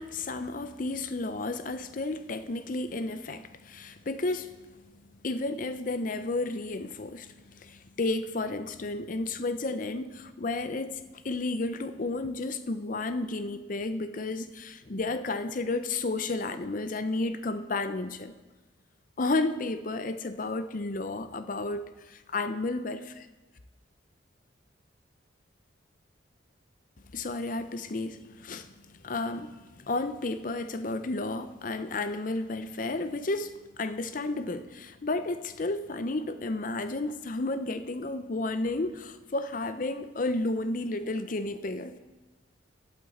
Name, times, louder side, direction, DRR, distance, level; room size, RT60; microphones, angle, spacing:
voice 1, 0.0-4.7 5.2-18.3 19.2-23.3 27.1-28.7 29.0-42.0, left 2 dB, 45° left, 11 dB, 0.6 m, -32 dB
11.5 x 11.5 x 4.2 m, 1.2 s
head